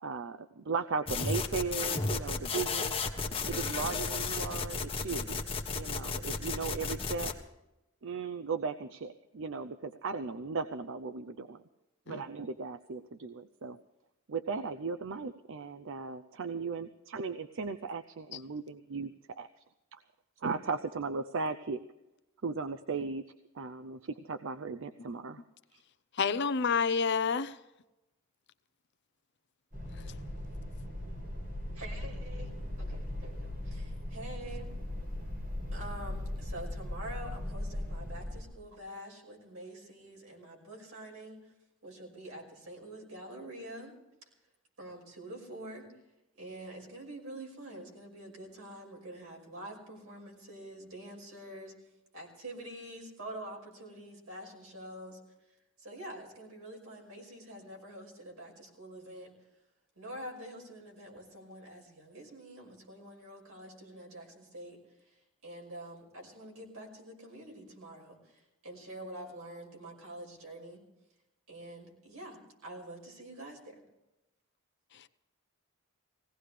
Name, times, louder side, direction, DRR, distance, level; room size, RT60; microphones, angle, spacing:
voice 1, 0.0-2.9 3.5-5.4 5.7-7.3 8.0-11.6 12.1-13.8 14.3-19.1 19.4-19.5 20.4-21.8 22.4-23.2 23.5-25.4 25.7-25.8, right 4 dB, 60° right, 0.6 m, -36 dB
sound 1, 1.1-7.3, left 4 dB, 25° left, 1.3 m, -33 dB
voice 2, 26.2-27.6 74.9-75.1, left 5 dB, 55° left, 0.6 m, -29 dB
sound 2, 29.7-38.4, left 1 dB, 40° right, 6.0 m, -38 dB
voice 3, 31.7-32.5 32.8-34.7 35.7-41.5 41.8-43.9 44.8-45.9 46.4-51.7 52.1-55.2 55.8-59.3 60.0-70.8 71.5-73.8, right 1 dB, 80° right, 5.6 m, -46 dB
20.0 x 17.0 x 3.3 m
head